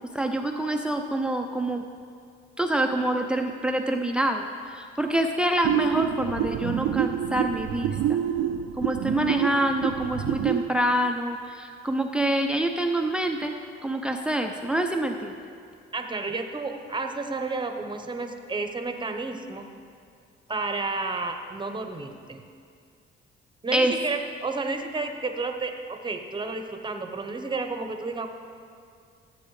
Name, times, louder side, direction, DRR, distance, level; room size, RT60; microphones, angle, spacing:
voice 1, 0.1-1.8 2.6-4.4 4.7-8.2 8.8-13.5 13.8-15.3 23.7-23.9, right 1 dB, 5° right, 4 dB, 0.6 m, -26 dB
sound 1, 5.6-10.7, right 9 dB, 85° right, 0.5 m, -27 dB
voice 2, 15.9-19.7 20.5-22.4 23.6-28.3, right 3 dB, 25° right, 6 dB, 0.9 m, -31 dB
15.0 x 8.5 x 3.2 m, 2.3 s
cardioid pair, 90°, 20 cm